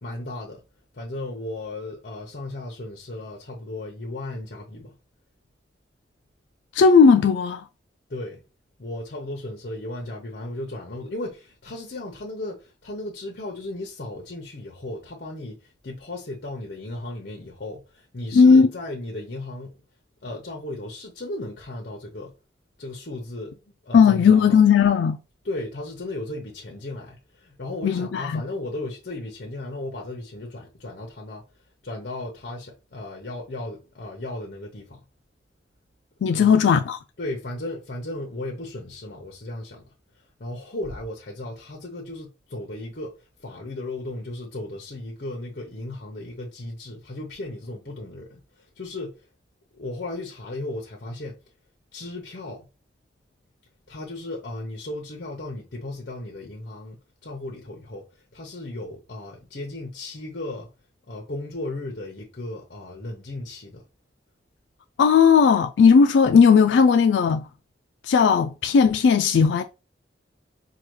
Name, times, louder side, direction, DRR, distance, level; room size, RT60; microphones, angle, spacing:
voice 1, 0.0-0.6 0.9-5.0 8.1-8.4 8.8-19.7 20.2-22.3 22.8-24.6 25.4-31.4 31.8-35.0 36.2-36.6 37.2-39.8 40.4-48.4 48.8-49.1 49.7-51.4 51.9-52.7 53.9-58.1 58.3-60.7 61.1-63.8, left 2 dB, 55° left, 0.8 m, -35 dB
voice 2, 6.7-7.6 18.3-18.7 23.9-25.2 27.8-28.4 36.2-37.0 65.0-67.4 68.1-69.6, left 6 dB, 80° left, 0.3 m, -16 dB
4.7 x 2.3 x 3.1 m
head